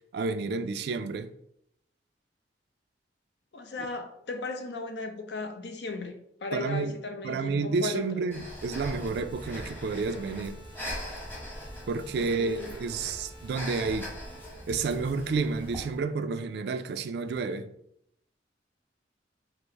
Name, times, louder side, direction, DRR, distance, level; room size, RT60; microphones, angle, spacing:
voice 1, 0.1-1.3 6.5-7.0 7.2-10.6 11.9-14.1 14.7-17.7, right 4 dB, 65° right, 0.3 m, -30 dB
voice 2, 3.5-6.1 6.4-8.2 12.2-12.8, left 3 dB, 70° left, 0.6 m, -36 dB
Breathing, 8.3-16.0, equal, 10° left, 1.0 m, -41 dB
sound 1, 8.8-14.7, right 2 dB, 90° left, 1.3 m, -52 dB
5.1 x 2.0 x 4.5 m
head